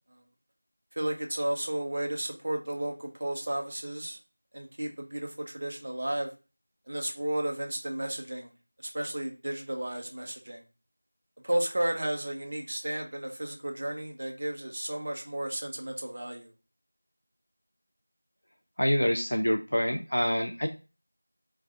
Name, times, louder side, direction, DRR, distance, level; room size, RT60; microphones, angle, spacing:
voice 1, 1.0-4.2 4.5-6.3 6.9-8.5 8.8-10.6 11.4-16.5, right 1 dB, 30° right, 2 dB, 0.6 m, -33 dB
voice 2, 18.8-20.7, equal, 80° left, 5 dB, 0.6 m, -26 dB
4.7 x 2.4 x 3.5 m, 0.31 s
figure-of-eight pair, 175°, 0 cm